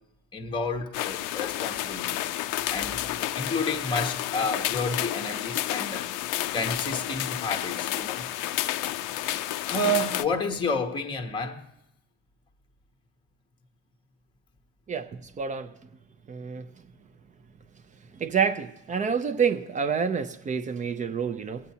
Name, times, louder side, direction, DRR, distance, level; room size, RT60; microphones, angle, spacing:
voice 1, 0.3-2.3 2.7-6.1 6.5-8.2 9.6-11.7, left 2 dB, 15° left, 0.7 m, -30 dB
sound 1, 0.9-10.3, left 14 dB, 60° left, 0.5 m, -31 dB
voice 2, 15.4-15.7 16.3-16.6 18.2-21.6, right 6 dB, 20° right, 0.4 m, -27 dB
16.5 x 8.2 x 2.7 m
supercardioid pair, 115°, 36 cm